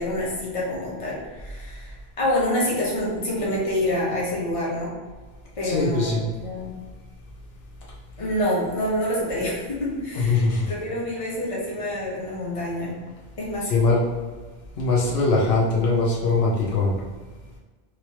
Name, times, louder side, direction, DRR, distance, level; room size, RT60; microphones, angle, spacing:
voice 1, 0.0-4.9 5.6-6.7 8.2-12.9 13.4-13.7, left 1 dB, 35° left, -6 dB, 1.0 m, -27 dB
voice 2, 5.6-6.2 10.2-10.7 13.7-14.0 14.8-16.9, left 3 dB, 75° left, -5 dB, 1.0 m, -21 dB
3.2 x 2.7 x 2.9 m, 1.4 s
omnidirectional pair, 1.0 m